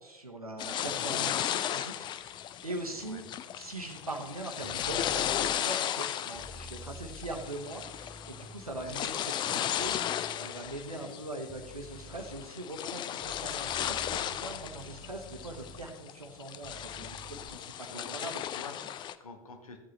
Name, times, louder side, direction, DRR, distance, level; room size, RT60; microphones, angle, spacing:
voice 1, 0.0-3.2 3.5-10.0 10.4-18.3, right 1 dB, 90° right, 2 dB, 1.0 m, -41 dB
sound 1, 0.6-19.1, left 11 dB, 25° left, 0.4 m, -35 dB
voice 2, 0.8-1.1 3.0-3.3 8.7-9.0 10.9-11.1 17.7-19.8, left 3 dB, 75° left, 5 dB, 1.3 m, -48 dB
sound 2, 4.6-5.5 6.3-9.0 9.8-10.7 11.5-12.4 13.2-15.8 16.6-17.5, right 2 dB, 5° right, 1.1 m, -49 dB
14.0 x 7.8 x 3.2 m, 1.1 s
figure-of-eight pair, 80°, 18 cm